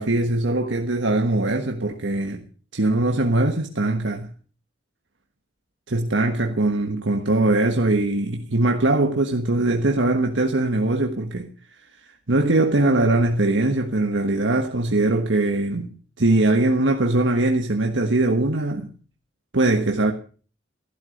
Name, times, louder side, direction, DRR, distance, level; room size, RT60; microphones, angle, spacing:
voice 1, 0.0-2.5 2.7-4.3 5.9-11.5 12.1-18.9 19.5-20.1, right 2 dB, 90° right, 1.4 m, -21 dB
15.0 x 12.0 x 6.5 m
head